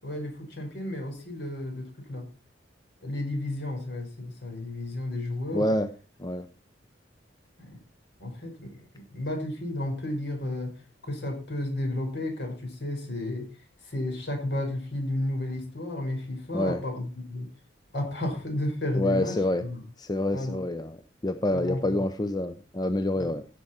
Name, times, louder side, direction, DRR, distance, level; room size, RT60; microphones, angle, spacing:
voice 1, 0.0-2.3 3.0-5.7 7.6-7.8 8.2-10.7 11.0-13.5 13.8-17.5 17.9-19.8 20.3-20.6 21.5-21.8 23.2-23.3, left 1 dB, 60° left, 3 dB, 5.3 m, -32 dB
voice 2, 5.5-5.9 6.2-6.5 16.5-16.8 18.9-19.6 20.0-21.0 21.2-23.5, left 1 dB, 20° left, 10 dB, 0.7 m, -27 dB
16.0 x 7.9 x 4.4 m, 0.35 s
head